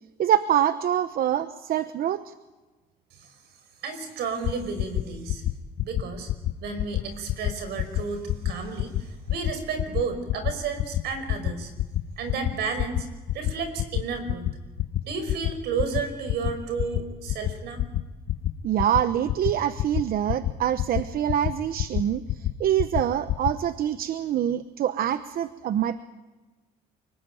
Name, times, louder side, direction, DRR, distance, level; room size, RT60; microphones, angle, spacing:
voice 1, 0.2-2.3 18.6-26.0, right 10 dB, 60° right, 12 dB, 1.0 m, -25 dB
voice 2, 3.8-5.4 5.8-6.3 6.6-11.7 12.2-13.1 13.3-14.5 15.0-17.8, right 5 dB, 75° right, 9 dB, 5.5 m, -32 dB
sound 1, 4.4-4.5 4.8-5.0 5.3-5.5 5.8-6.0 6.3-6.5 6.8-7.0 7.3-7.5 7.8-8.0 8.3-8.5 8.8-9.0 9.3-9.5 9.8-10.0 10.3-10.5 10.8-11.0 11.3-11.5 11.8-12.0 12.3-12.5 12.8-13.0 13.3-13.5 13.8-14.0 14.3-14.5 14.8-15.0 15.3-15.5 15.8-16.0 16.3-16.5 16.8-17.0 17.3-17.5 17.8-18.0 18.3-18.5 18.8-19.0 19.3-19.5 19.8-20.0 20.3-20.5 20.8-21.0 21.3-21.5 21.8-22.0 22.3-22.5 22.8-23.0 23.3-23.5, left 13 dB, 70° left, 1.3 m, -26 dB
29.5 x 19.5 x 9.1 m, 1.2 s
cardioid pair, 110°, 17 cm